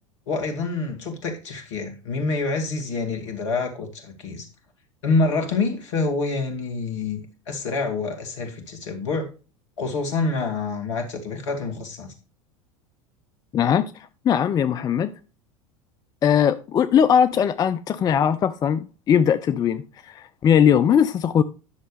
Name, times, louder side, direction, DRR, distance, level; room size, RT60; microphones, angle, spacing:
voice 1, 0.3-4.5 5.0-7.2 7.5-9.3 9.8-12.1, left 3 dB, 65° left, 2.1 m, -26 dB
voice 2, 13.5-15.1 16.2-21.4, left 8 dB, 25° left, 0.4 m, -20 dB
10.5 x 6.4 x 3.3 m
figure-of-eight pair, 80°, 17 cm